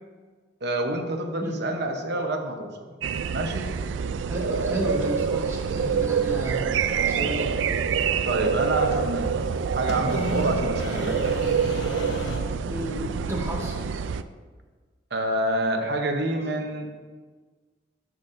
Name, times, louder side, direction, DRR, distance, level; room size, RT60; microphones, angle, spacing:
voice 1, 0.6-2.9 3.3-3.8 8.2-11.5 15.1-17.1, right 1 dB, 65° right, 4 dB, 0.9 m, -28 dB
sound 1, 3.0-14.2, right 6 dB, 90° right, 0.3 m, -26 dB
voice 2, 4.3-6.7 7.1-7.5 12.7-13.8 16.4-16.5, equal, 15° right, -3 dB, 1.4 m, -32 dB
sound 2, 4.8-12.4, equal, 75° left, 0.9 m, -37 dB
13.0 x 6.1 x 2.6 m, 1.4 s
head